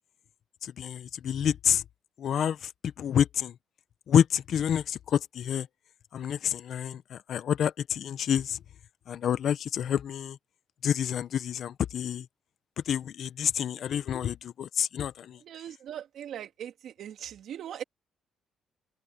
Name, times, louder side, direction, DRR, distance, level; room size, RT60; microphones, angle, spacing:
voice 1, 0.6-1.8 2.2-2.7 3.0-3.5 4.1-5.7 6.1-8.6 9.1-10.4 10.8-12.3 12.9-15.4, left 9 dB, 65° left, 0.8 m, -28 dB
voice 2, 15.4-17.8, right 10 dB, 70° right, 2.5 m, -40 dB
cardioid pair, 90°, 0 cm